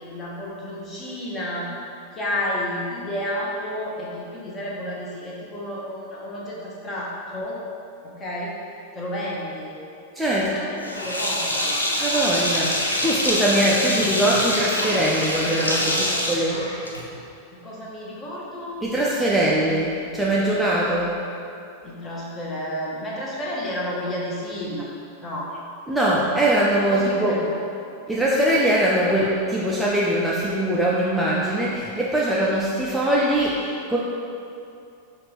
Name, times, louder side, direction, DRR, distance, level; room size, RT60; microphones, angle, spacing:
voice 1, 0.0-1.7 2.1-7.6 8.0-8.5 8.9-9.8 10.4-11.9 15.4-16.2 17.5-18.8 21.8-24.9 25.2-25.5 26.9-27.5, left 1 dB, 25° left, -5 dB, 0.9 m, -31 dB
voice 2, 10.1-10.5 12.0-16.6 18.8-21.1 25.9-27.4 28.1-34.0, right 1 dB, 5° right, -6 dB, 0.4 m, -22 dB
Sink (filling or washing), 10.8-17.2, left 1 dB, 85° left, 0.5 m, -25 dB
5.7 x 2.5 x 3.1 m, 2.6 s
figure-of-eight pair, 90°, 0 cm